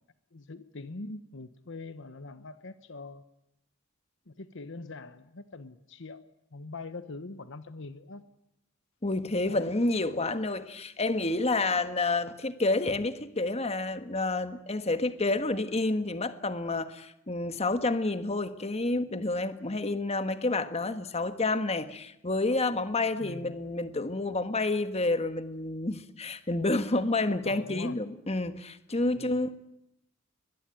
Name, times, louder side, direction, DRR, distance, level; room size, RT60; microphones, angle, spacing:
voice 1, 0.3-3.2 4.3-6.2 6.5-8.2 9.5-9.7 23.2-23.6 27.3-28.0 29.1-29.5, left 3 dB, 60° left, 1.0 m, -43 dB
voice 2, 9.0-29.5, left 2 dB, 30° left, 1.5 m, -29 dB
22.0 x 21.5 x 9.1 m
head